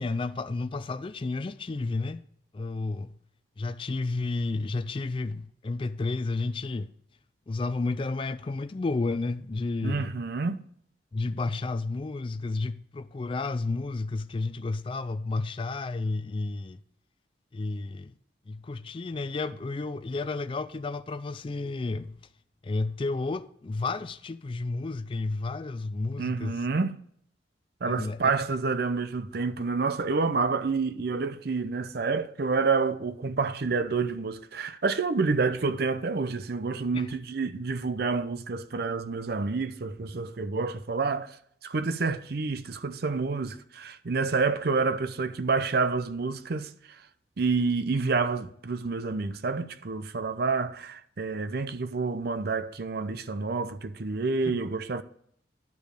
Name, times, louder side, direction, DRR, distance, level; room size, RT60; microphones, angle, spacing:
voice 1, 0.0-2.2 2.5-3.1 3.6-6.9 7.5-10.1 11.1-16.8 17.5-18.1 18.5-22.2 22.6-26.6 27.8-28.3 36.9-37.1 54.5-54.6, left 3 dB, 30° left, 0.3 m, -31 dB
voice 2, 9.8-10.6 26.2-27.0 27.8-41.4 41.6-47.0 47.4-55.0, right 4 dB, 60° right, 0.6 m, -28 dB
10.5 x 5.2 x 6.4 m
head